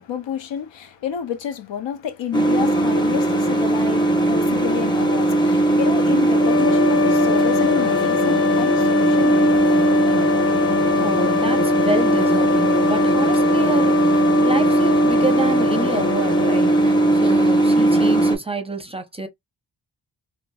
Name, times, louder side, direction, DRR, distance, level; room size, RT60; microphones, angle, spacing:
voice 1, 0.0-9.9, left 8 dB, 80° left, 0.6 m, -29 dB
sound 1, 2.3-18.4, right 2 dB, 10° left, 0.9 m, -18 dB
sound 2, 6.4-17.3, left 8 dB, 35° left, 0.4 m, -24 dB
voice 2, 11.0-19.3, right 2 dB, 15° right, 0.6 m, -28 dB
3.0 x 2.1 x 2.2 m
cardioid pair, 55°, 44 cm